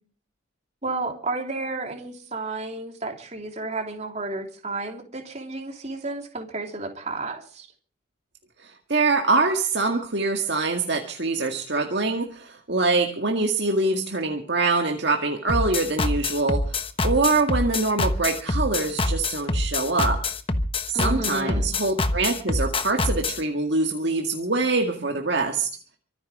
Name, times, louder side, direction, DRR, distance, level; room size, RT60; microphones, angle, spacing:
voice 1, 0.8-7.7 20.9-21.6, right 2 dB, 35° right, 3 dB, 3.2 m, -32 dB
voice 2, 8.6-20.2 20.9-25.7, right 3 dB, 55° right, 3 dB, 2.0 m, -24 dB
sound 1, 15.5-23.4, left 2 dB, 25° left, 1.1 m, -25 dB
24.5 x 9.8 x 4.9 m, 0.42 s
head